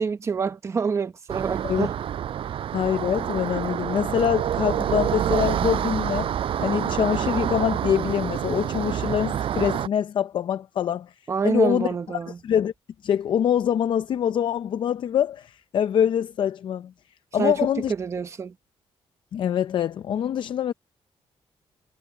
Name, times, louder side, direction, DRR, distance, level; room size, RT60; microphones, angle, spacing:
voice 1, 0.0-2.0 2.4-2.5 11.3-12.4 17.4-17.6 17.9-18.5, right 5 dB, 25° right, 0.9 m, -27 dB
sound 1, 1.3-9.9, right 10 dB, 60° right, 5.7 m, -27 dB
voice 2, 2.7-6.3 6.6-11.1 11.4-11.9 12.4-12.7 13.0-16.9 17.3-17.9 19.3-20.7, left 9 dB, 50° left, 0.5 m, -24 dB
cardioid pair, 175°, 11 cm